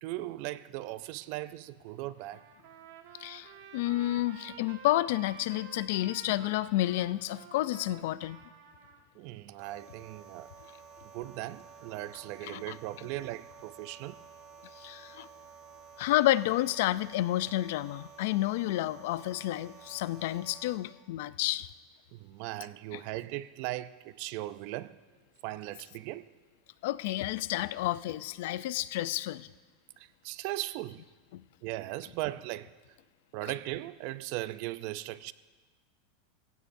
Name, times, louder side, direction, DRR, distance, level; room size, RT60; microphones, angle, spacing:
voice 1, 0.0-2.4 9.1-10.5 11.1-14.2 22.1-25.0 25.4-26.3 30.0-31.0 31.6-32.7 33.3-35.3, right 16 dB, 50° right, 0.5 m, -38 dB
Trumpet, 2.2-9.0, right 8 dB, 70° right, 1.6 m, -51 dB
voice 2, 3.2-8.4 12.4-12.8 14.8-15.3 16.0-21.7 26.8-29.5 31.3-31.4, left 15 dB, 65° left, 0.4 m, -30 dB
sound 1, 9.6-20.8, right 6 dB, 35° right, 3.2 m, -52 dB
26.0 x 15.5 x 2.7 m
supercardioid pair, 150°, 0 cm